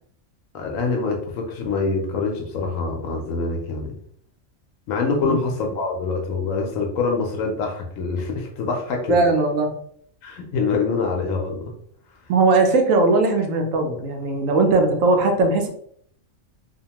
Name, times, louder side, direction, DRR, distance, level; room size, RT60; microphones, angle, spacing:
voice 1, 0.5-3.9 4.9-9.2 10.2-11.7, left 4 dB, 90° left, 2 dB, 1.0 m, -25 dB
voice 2, 9.1-9.7 12.3-15.7, right 3 dB, 85° right, 4 dB, 1.0 m, -19 dB
2.8 x 2.1 x 2.8 m, 0.64 s
omnidirectional pair, 1.3 m